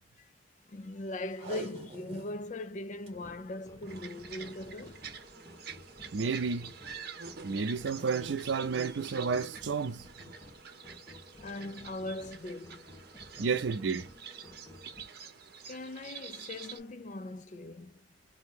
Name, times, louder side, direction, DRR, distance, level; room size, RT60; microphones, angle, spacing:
voice 1, 0.7-5.1 11.4-12.9 15.7-18.1, left 2 dB, 45° left, 0.4 m, -40 dB
Packing tape duct tape, 1.3-2.4 2.8-3.1 3.7-4.0 5.0-5.3 5.9-6.0, right 2 dB, 35° right, 1.6 m, -44 dB
sound 1, 3.1-15.1, left 1 dB, 15° left, 0.9 m, -53 dB
sound 2, 3.9-16.8, right 6 dB, 60° right, 0.8 m, -47 dB
voice 2, 6.1-6.7 7.4-10.1 13.4-14.1, right 5 dB, 85° right, 0.5 m, -31 dB
2.8 x 2.7 x 3.7 m
head